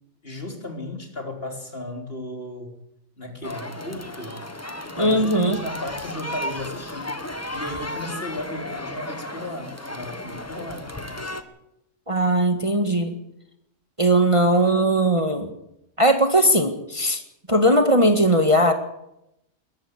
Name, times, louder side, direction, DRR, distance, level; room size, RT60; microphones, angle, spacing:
voice 1, 0.2-2.7 3.2-4.4 4.8-7.1 7.5-11.3, left 1 dB, 45° left, 3 dB, 3.9 m, -35 dB
sound 1, 3.4-11.4, left 1 dB, 10° left, 1.3 m, -34 dB
voice 2, 5.0-5.6 12.1-13.1 14.0-15.5 16.0-17.2 17.5-18.7, right 1 dB, 25° right, 6 dB, 1.8 m, -19 dB
21.5 x 14.5 x 8.6 m, 0.83 s
omnidirectional pair, 1.4 m